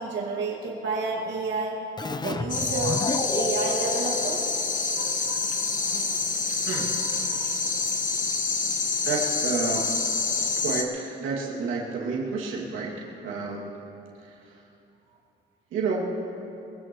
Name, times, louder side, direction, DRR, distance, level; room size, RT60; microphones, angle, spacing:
voice 1, 0.0-1.8 2.2-4.4 4.9-5.5 6.7-6.9 7.2-7.5 9.7-9.8 10.2-10.4, right 3 dB, 70° right, -3 dB, 1.9 m, -31 dB
Keyboard (musical), 2.0-5.3, left 2 dB, 20° left, 0.6 m, -32 dB
sound 1, 2.5-10.8, left 4 dB, 40° left, 1.3 m, -27 dB
voice 2, 6.6-7.0 9.0-10.0 10.6-13.7 14.2-14.6 15.7-16.2, right 4 dB, 90° right, -3 dB, 2.3 m, -30 dB
22.0 x 16.0 x 3.1 m, 2.9 s
cardioid pair, 90°, 20 cm